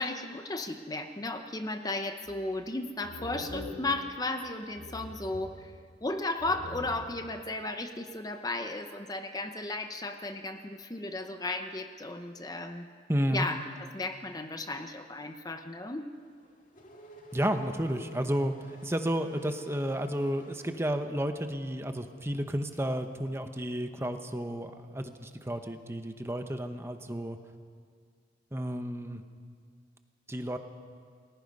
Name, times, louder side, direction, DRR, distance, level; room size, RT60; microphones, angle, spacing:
voice 1, 0.0-5.7 6.0-12.9 13.3-16.1, left 2 dB, 20° left, 6 dB, 0.8 m, -35 dB
sound 1, 2.3-2.7 3.0-4.5 4.8-6.1 6.4-7.4, left 1 dB, 85° left, 2.1 m, -44 dB
voice 2, 13.1-13.5 17.3-27.4 28.5-29.2 30.3-30.6, equal, 15° right, 7 dB, 1.0 m, -32 dB
Race car auto racing / Accelerating revving vroom, 16.2-21.4, left 2 dB, 45° left, 2.1 m, -51 dB
29.0 x 19.5 x 5.5 m, 2.1 s
head